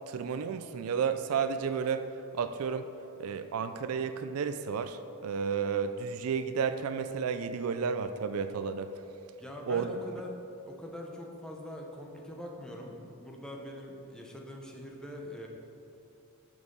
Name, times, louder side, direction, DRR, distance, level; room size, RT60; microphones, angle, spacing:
voice 1, 0.1-2.9 3.2-8.9 9.7-9.9, right 6 dB, 75° right, 10 dB, 0.4 m, -32 dB
voice 2, 9.4-10.4 10.7-15.5, left 1 dB, 5° left, 0 dB, 0.9 m, -43 dB
7.0 x 6.6 x 5.2 m, 2.8 s
head